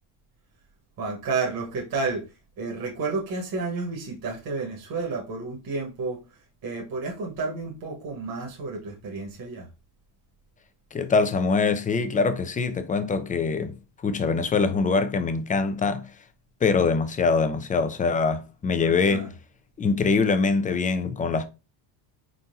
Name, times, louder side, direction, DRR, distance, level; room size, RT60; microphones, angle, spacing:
voice 1, 1.0-2.2 2.6-6.2 6.6-9.7 18.8-19.3, right 4 dB, 45° right, 1.4 m, -31 dB
voice 2, 10.9-13.8 14.0-16.1 16.6-19.3 19.8-21.5, left 4 dB, 20° left, 0.4 m, -23 dB
4.2 x 4.0 x 2.6 m
cardioid pair, 120°, 50 cm